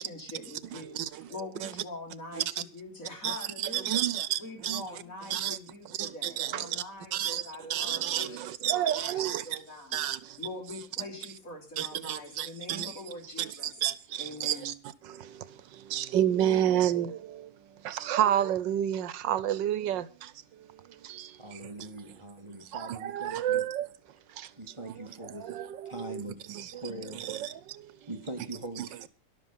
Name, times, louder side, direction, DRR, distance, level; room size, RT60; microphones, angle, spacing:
voice 1, 0.0-4.0 4.4-10.0 10.4-13.7 14.2-14.7, left 2 dB, 45° left, 4.2 m, -43 dB
voice 2, 0.7-1.3 1.6-1.7 2.3-2.6 3.2-4.8 5.3-5.6 6.0-6.8 7.1-9.5 9.9-10.4 11.8-13.0 13.4-14.7 15.0-21.9 22.6-23.9 24.3-24.5 24.8-24.9 25.2-26.2 26.5-26.8 27.1-28.1 28.8-28.9, right 11 dB, 85° right, 1.5 m, -31 dB
voice 3, 21.3-23.7 24.6-25.6 25.9-27.2 28.1-29.1, right 2 dB, 15° right, 1.9 m, -42 dB
13.0 x 11.5 x 5.6 m
omnidirectional pair, 1.9 m